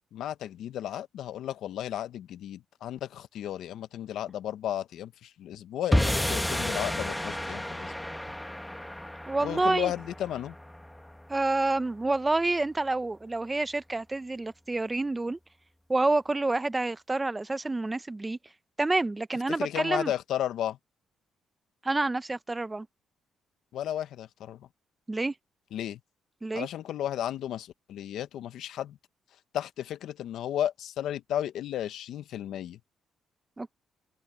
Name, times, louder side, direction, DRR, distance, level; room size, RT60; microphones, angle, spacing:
voice 1, 0.0-7.9 9.4-10.5 19.5-20.8 23.7-24.7 25.7-26.0 26.5-29.0 29.5-32.8, left 11 dB, 75° left, 0.9 m, -34 dB
sound 1, 5.9-12.3, left 1 dB, 5° left, 1.3 m, -32 dB
voice 2, 9.3-9.9 11.3-15.4 15.9-18.4 18.8-20.1 21.8-22.9 25.1-25.3 26.4-26.7 33.6-33.7, right 2 dB, 20° right, 0.7 m, -28 dB
cardioid pair, 90°, 0 cm